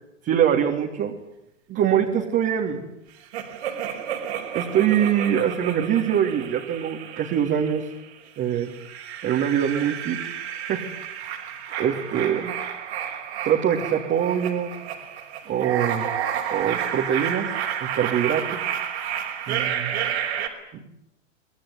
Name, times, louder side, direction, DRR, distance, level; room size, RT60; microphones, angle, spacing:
voice 1, 0.2-1.1 1.7-2.9 4.5-7.8 8.4-8.7 9.2-10.2 10.5-10.9 11.2-11.3 11.8-12.5 13.4-14.7 15.5-16.1 16.5-17.5 17.8-18.6 19.5-20.0, right 9 dB, 30° right, 1 dB, 3.2 m, -23 dB
sound 1, 3.3-8.0 8.6-20.5, right 9 dB, 60° right, 5.4 m, -31 dB
25.0 x 20.5 x 9.7 m, 0.83 s
figure-of-eight pair, 105°, 36 cm